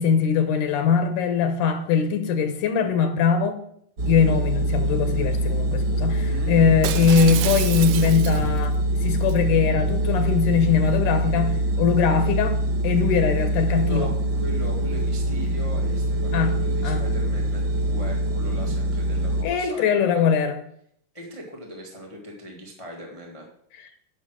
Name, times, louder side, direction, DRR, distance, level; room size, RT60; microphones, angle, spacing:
voice 1, 0.0-3.6 4.1-8.8 9.0-12.6 12.8-14.1 16.3-16.5 16.8-17.0 19.4-20.6, left 6 dB, 75° left, 8 dB, 2.4 m, -21 dB
sound 1, 4.0-19.4, right 1 dB, 45° right, 1.7 m, -24 dB
voice 2, 6.2-6.6 13.7-20.2 21.1-23.5, left 1 dB, 35° left, 0 dB, 0.4 m, -39 dB
Shatter, 6.8-8.6 9.1-9.4, right 13 dB, 80° right, 2.0 m, -30 dB
9.9 x 6.0 x 6.3 m, 0.69 s
omnidirectional pair, 3.8 m